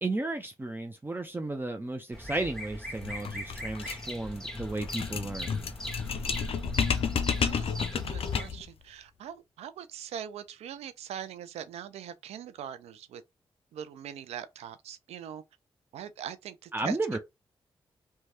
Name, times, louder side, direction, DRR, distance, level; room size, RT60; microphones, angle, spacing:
voice 1, 0.0-5.6 16.7-17.2, right 2 dB, 20° right, 0.5 m, -33 dB
Bird vocalization bird call bird song, 2.1-8.5, equal, 5° left, 1.3 m, -40 dB
sound 1, 3.0-8.7, left 6 dB, 65° left, 0.4 m, -31 dB
voice 2, 7.4-13.2 13.7-15.4 15.9-17.2, right 9 dB, 85° right, 0.4 m, -42 dB
3.1 x 2.2 x 2.8 m
supercardioid pair, 40°, 10 cm